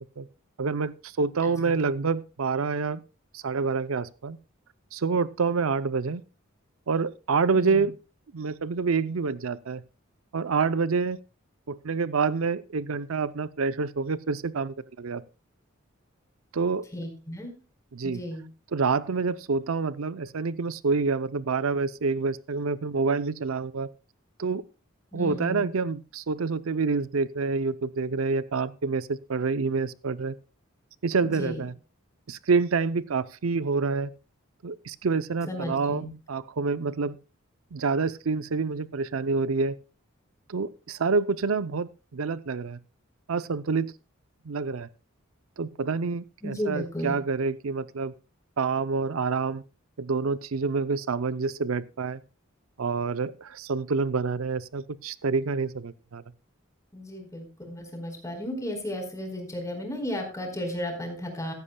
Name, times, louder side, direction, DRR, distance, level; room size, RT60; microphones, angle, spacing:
voice 1, 0.6-3.0 3.3-4.4 4.9-6.2 6.9-7.9 8.3-9.8 10.3-11.2 11.7-15.2 16.5-16.9 17.9-18.2 18.7-23.9 24.4-24.6 25.1-30.4 31.0-31.7 32.3-34.1 34.6-37.2 37.7-39.8 40.5-42.8 43.3-43.9 44.5-44.9 45.6-48.1 48.6-49.6 50.0-52.2 52.8-56.2, right 4 dB, 80° right, 15 dB, 0.6 m, -27 dB
voice 2, 16.9-17.5 18.0-18.4 25.1-25.6 31.2-31.6 35.5-36.1 46.4-47.2 56.9-61.5, equal, 15° left, 3 dB, 4.5 m, -34 dB
15.5 x 14.0 x 2.3 m, 0.32 s
head